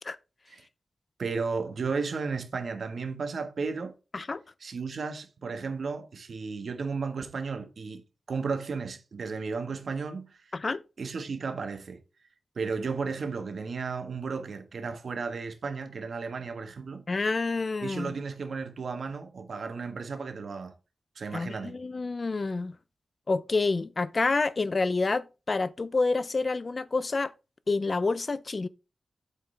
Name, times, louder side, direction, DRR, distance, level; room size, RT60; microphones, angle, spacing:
voice 1, 1.2-3.9 4.6-8.0 8.3-10.4 11.0-12.0 12.5-17.0 17.8-20.7 21.1-21.8, right 4 dB, 65° right, 1.5 m, -34 dB
voice 2, 17.1-18.1 21.3-22.7 23.3-27.3 27.7-28.7, left 3 dB, 40° left, 0.5 m, -28 dB
8.2 x 6.8 x 3.4 m
wide cardioid pair, 125°, 0 cm